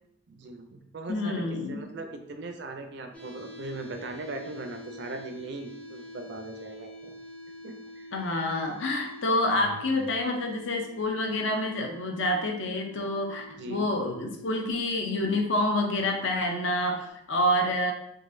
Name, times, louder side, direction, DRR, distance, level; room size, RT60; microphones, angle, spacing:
voice 1, 0.3-7.1 7.6-8.1 9.5-10.0 13.5-13.9, right 2 dB, 55° right, 5 dB, 0.4 m, -40 dB
voice 2, 1.1-1.8 8.1-17.9, left 1 dB, 70° left, 2 dB, 0.5 m, -28 dB
sound 1, 3.1-17.1, equal, 5° left, 0.4 m, -47 dB
3.8 x 2.4 x 2.5 m, 0.77 s
head